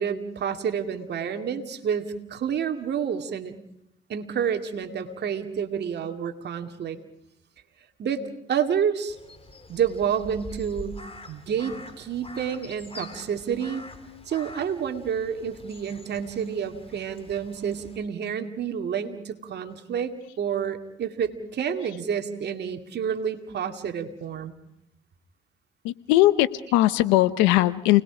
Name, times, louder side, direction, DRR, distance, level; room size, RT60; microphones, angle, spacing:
voice 1, 0.0-3.5 4.1-7.0 8.0-8.2 8.5-9.2 9.7-11.0 11.3-13.8 14.3-24.5, right 7 dB, 65° right, 6 dB, 2.4 m, -29 dB
Crow, 9.1-18.0, left 2 dB, 30° left, 3.7 m, -45 dB
voice 2, 25.8-28.0, left 16 dB, 90° left, 16 dB, 0.9 m, -21 dB
29.5 x 20.5 x 5.0 m, 0.77 s
supercardioid pair, 55°, 19 cm